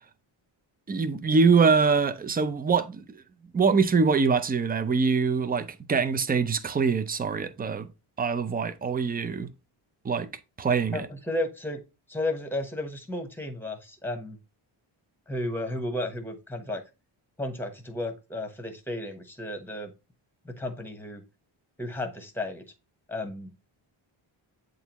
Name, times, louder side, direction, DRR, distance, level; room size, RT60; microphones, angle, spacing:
voice 1, 0.9-3.2 3.5-7.9 8.2-9.5 10.0-10.3 10.6-11.0, right 5 dB, 20° right, 0.4 m, -24 dB
voice 2, 10.9-11.8 12.1-14.4 15.3-16.8 17.4-19.9 20.4-21.2 21.8-22.6 23.1-23.5, left 1 dB, 5° left, 1.1 m, -33 dB
8.2 x 3.9 x 2.9 m
wide cardioid pair, 130°, 49 cm